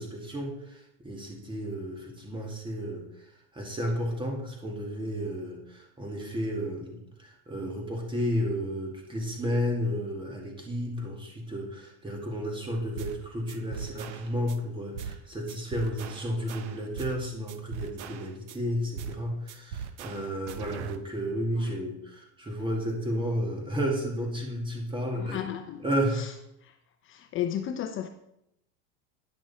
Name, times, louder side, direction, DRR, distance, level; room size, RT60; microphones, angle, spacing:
voice 1, 0.0-3.0 3.5-25.5 25.8-26.3, equal, 15° right, 2.2 m, -32 dB
sound 1, 13.0-13.2 13.5-14.6 15.0-15.2 15.5-17.2 17.5-18.6 19.0-19.2 19.5-21.0, right 7 dB, 85° right, 0.8 m, -39 dB
voice 2, 25.1-25.8 26.1-26.3 26.6-26.7 27.0-28.1, left 10 dB, 35° left, 0.7 m, -34 dB
10.5 x 6.1 x 4.2 m
supercardioid pair, 115°, 34 cm